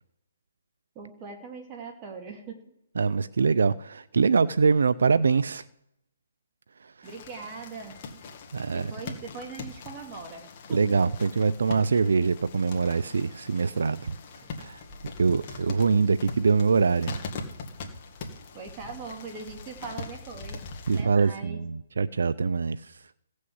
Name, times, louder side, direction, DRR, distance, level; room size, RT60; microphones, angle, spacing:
voice 1, 0.9-2.6 7.0-8.0 8.7-11.0 14.4-14.5 18.5-20.7 21.0-21.6, right 4 dB, 25° right, 2.6 m, -41 dB
voice 2, 3.0-5.6 8.5-8.9 10.7-14.1 14.6-14.8 15.2-17.2 20.9-22.9, right 5 dB, 75° right, 0.5 m, -24 dB
sound 1, 7.0-21.0, left 4 dB, 35° left, 2.2 m, -42 dB
16.5 x 6.4 x 7.9 m
hypercardioid pair, 155°, 0 cm